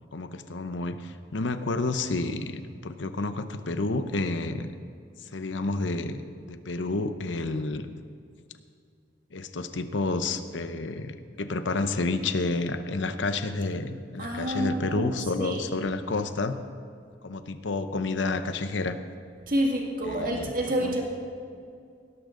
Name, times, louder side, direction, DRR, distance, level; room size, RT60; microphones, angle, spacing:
voice 1, 0.1-4.7 5.2-8.0 9.3-16.6 17.2-19.0 20.1-21.0, left 3 dB, 85° left, 10 dB, 0.8 m, -30 dB
voice 2, 14.2-15.0 15.4-15.6 19.5-21.0, equal, 50° right, 0 dB, 2.0 m, -28 dB
17.5 x 12.0 x 3.8 m, 2.4 s
head